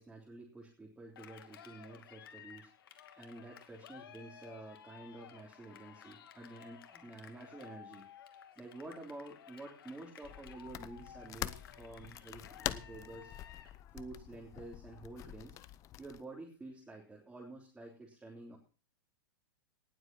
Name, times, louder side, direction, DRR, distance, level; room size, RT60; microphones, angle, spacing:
voice 1, 0.0-2.7 3.2-8.1 8.6-13.4 13.9-15.6 16.0-18.6, right 2 dB, 10° right, -2 dB, 3.6 m, -50 dB
Cheering, 1.2-13.8, left 9 dB, 85° left, 2.5 m, -55 dB
sound 1, 10.2-16.2, left 13 dB, 25° left, 0.8 m, -45 dB
18.5 x 7.9 x 6.3 m, 0.37 s
supercardioid pair, 150°, 12 cm